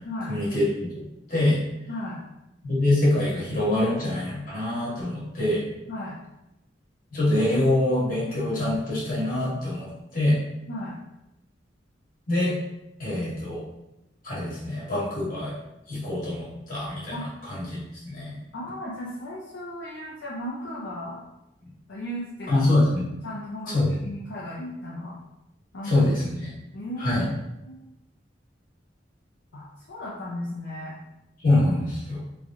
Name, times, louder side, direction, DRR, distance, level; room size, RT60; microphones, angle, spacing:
voice 1, 0.3-1.0 1.3-1.6 2.6-5.6 7.1-10.4 12.3-12.5 13.0-13.6 14.2-15.5 15.9-17.8 18.0-18.4 22.5-23.0 23.7-23.9 25.8-26.5 27.0-27.3 31.4-32.2, left 1 dB, 45° left, -7 dB, 1.2 m, -24 dB
voice 2, 1.9-2.2 5.9-6.2 10.7-11.0 17.1-17.3 18.5-21.2 21.9-22.6 23.2-25.1 25.7-25.9 26.7-27.2 27.7-27.9 29.5-31.0, left 1 dB, 65° left, -6 dB, 0.5 m, -35 dB
3.1 x 2.4 x 2.6 m, 0.91 s
head